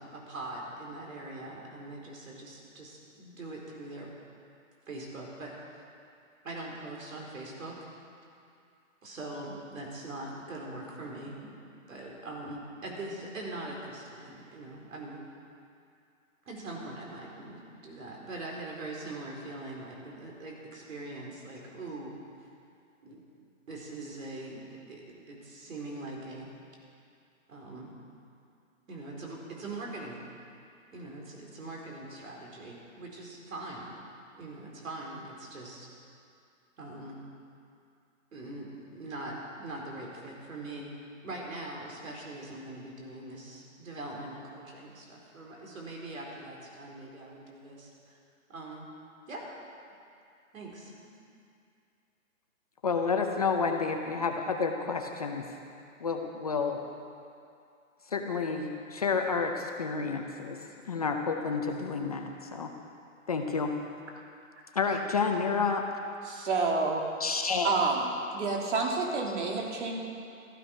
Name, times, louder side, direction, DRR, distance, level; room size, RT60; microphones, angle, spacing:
voice 1, 0.0-4.1 4.9-5.5 6.4-7.8 9.0-11.5 11.9-15.2 16.5-22.1 23.0-23.2 23.7-26.5 27.5-27.9 28.9-30.2 30.9-33.9 34.3-35.9 36.8-37.2 38.3-40.9 41.2-48.2 48.5-48.9 49.3-49.4 50.5-51.1, right 2 dB, 70° right, -2 dB, 4.5 m, -42 dB
voice 2, 52.8-55.4 56.0-56.8 58.1-62.7 63.3-63.7 64.7-65.9 67.2-67.7, left 5 dB, 30° left, 3 dB, 0.6 m, -30 dB
voice 3, 66.2-67.0 67.6-68.1 68.3-70.0, right 3 dB, 55° right, 0 dB, 2.8 m, -29 dB
15.5 x 13.5 x 5.4 m, 2.5 s
hypercardioid pair, 165°, 41 cm